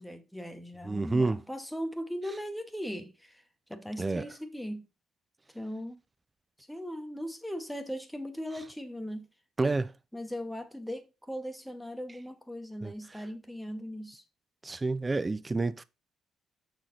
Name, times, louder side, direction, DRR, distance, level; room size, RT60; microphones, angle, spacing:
voice 1, 0.0-3.4 3.7-4.9 5.5-6.0 6.7-9.3 10.1-14.2, equal, ahead, 0.8 m, -39 dB
voice 2, 0.8-1.4 4.0-4.3 9.6-9.9 12.8-12.9 14.6-15.8, right 3 dB, 25° right, 0.3 m, -29 dB
6.2 x 4.2 x 3.8 m
cardioid pair, 90°, 0 cm